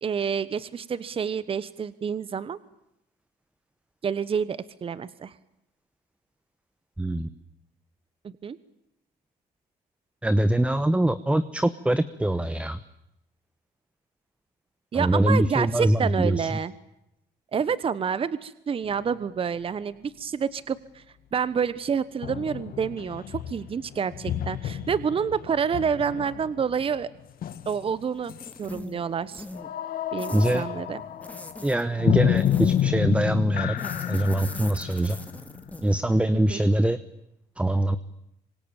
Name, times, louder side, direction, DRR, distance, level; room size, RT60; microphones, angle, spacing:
voice 1, 0.0-2.6 4.0-5.3 8.2-8.6 14.9-16.7 17.5-21.0 21.3-27.1 27.7-28.3 28.6-29.5 30.1-31.0 36.5-36.6, right 6 dB, 35° right, 16 dB, 1.1 m, -28 dB
voice 2, 7.0-7.3 10.2-12.8 14.9-16.5 30.3-30.6 31.6-33.8 34.1-35.2 35.8-37.0 37.6-38.0, right 1 dB, 5° right, 13 dB, 1.0 m, -23 dB
sound 1, 18.9-19.0 22.2-28.0 28.3-28.6 29.5-36.2, left 10 dB, 60° left, 2.0 m, -30 dB
sound 2, 28.3-29.0 29.3-29.7 30.2-30.6 31.2-31.8 32.3-33.0 33.8-36.0, left 2 dB, 10° left, 2.4 m, -41 dB
26.0 x 25.0 x 9.0 m, 0.82 s
cardioid pair, 110°, 17 cm